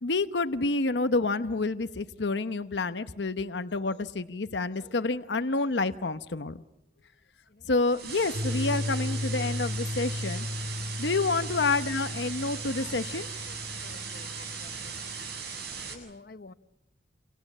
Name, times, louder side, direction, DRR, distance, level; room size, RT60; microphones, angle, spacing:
voice 1, 0.0-6.6 7.6-10.5 11.0-13.6 14.4-14.5, left 3 dB, 80° left, 0.9 m, -29 dB
sound 1, 7.9-15.9, right 6 dB, 65° right, 7.6 m, -38 dB
sound 2, 8.3-15.4, left 2 dB, 85° right, 7.5 m, -35 dB
voice 2, 13.8-14.9 15.9-16.5, left 2 dB, 55° left, 0.9 m, -49 dB
27.5 x 27.5 x 7.3 m
head